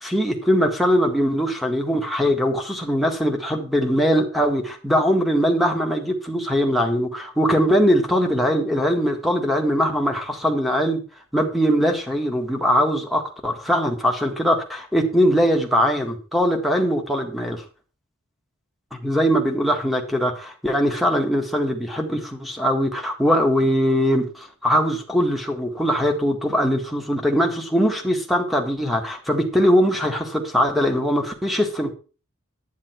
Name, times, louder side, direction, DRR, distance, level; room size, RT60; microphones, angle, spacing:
voice 1, 0.0-11.0 11.3-17.6 19.0-31.9, equal, ahead, 4 dB, 1.7 m, -21 dB
10.5 x 9.3 x 4.4 m, 0.36 s
head